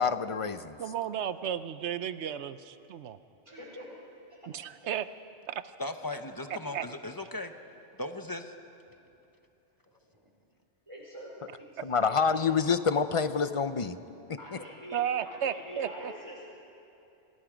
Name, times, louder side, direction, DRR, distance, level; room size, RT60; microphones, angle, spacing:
voice 1, 0.0-0.8 11.8-14.0 14.5-14.6, left 5 dB, 35° left, 12 dB, 0.5 m, -27 dB
voice 2, 0.8-3.2 4.5-5.1 5.5-5.6 6.7-6.8 14.9-16.1, right 9 dB, 75° right, 13 dB, 1.0 m, -33 dB
voice 3, 3.4-4.5 8.9-9.0 10.1-10.2 10.9-11.7 12.0-12.8 14.4-16.5, equal, 25° right, -4 dB, 4.9 m, -46 dB
voice 4, 5.8-7.5 8.0-8.5, left 2 dB, 20° left, 7 dB, 0.9 m, -37 dB
27.5 x 20.0 x 5.1 m, 2.8 s
omnidirectional pair, 1.2 m